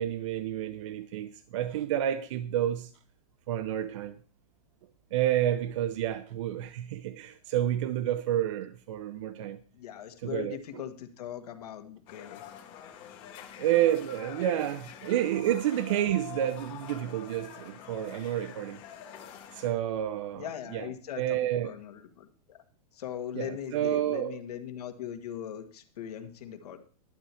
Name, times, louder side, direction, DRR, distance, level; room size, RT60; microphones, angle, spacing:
voice 1, 0.0-2.9 3.5-4.1 5.1-9.6 10.2-10.8 13.6-18.8 19.5-20.9 21.2-21.7 23.4-24.4, right 12 dB, 50° right, 0.6 m, -30 dB
voice 2, 9.7-12.4 20.3-21.4 21.6-22.6 22.9-26.8, left 9 dB, 75° left, 1.8 m, -40 dB
sound 1, 12.1-19.7, left 9 dB, 25° left, 1.4 m, -46 dB
11.5 x 4.5 x 8.3 m
supercardioid pair, 165°, 20 cm